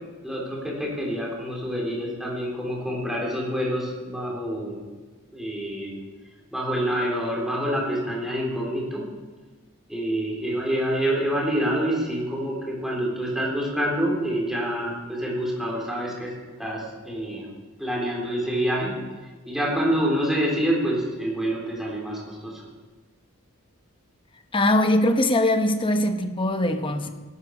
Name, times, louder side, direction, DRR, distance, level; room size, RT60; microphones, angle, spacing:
voice 1, 0.2-4.8 5.3-6.0 6.5-9.1 9.9-17.5 17.8-19.0 19.5-22.6, equal, ahead, 3.9 m, -27 dB
voice 2, 24.5-27.1, left 1 dB, 25° left, 1.0 m, -21 dB
16.5 x 12.5 x 4.9 m
head